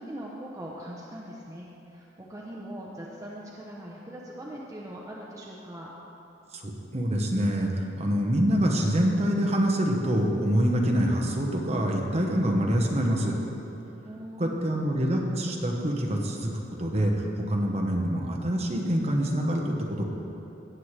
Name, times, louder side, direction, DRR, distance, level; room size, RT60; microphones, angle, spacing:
voice 1, 0.0-5.9 14.0-15.0, equal, 15° right, -4 dB, 0.7 m, -41 dB
voice 2, 6.5-13.3 14.4-16.5 16.8-20.0, equal, 35° right, 0 dB, 1.0 m, -25 dB
17.0 x 7.5 x 3.3 m, 2.9 s
head